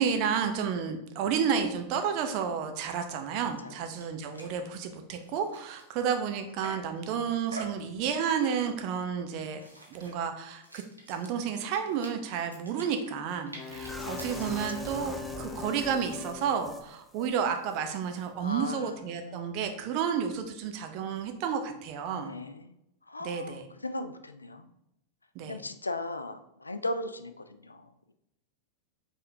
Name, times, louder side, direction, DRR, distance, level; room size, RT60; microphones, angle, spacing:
voice 1, 0.0-9.6 9.9-10.8 11.1-22.3 23.2-23.6 25.3-25.6, right 7 dB, 45° right, 6 dB, 0.6 m, -31 dB
sound 1, 3.7-3.8 4.0-4.1 4.3-4.6 5.0-7.0 7.5-7.9 8.4-8.9 9.4-14.8, right 2 dB, 90° right, 0.9 m, -47 dB
Wind instrument woodwind instrument, 13.6-16.7, left 5 dB, 40° left, 0.7 m, -41 dB
sound 2, 13.7-16.9 17.1-17.3 17.7-17.8, equal, 5° left, 0.5 m, -42 dB
voice 2, 13.9-14.2 14.5-14.8 18.4-19.5 22.1-22.7 23.1-24.7 25.4-28.1, left 2 dB, 80° left, 9 dB, 0.3 m, -38 dB
5.5 x 3.5 x 2.7 m, 0.83 s
figure-of-eight pair, 90°, 0 cm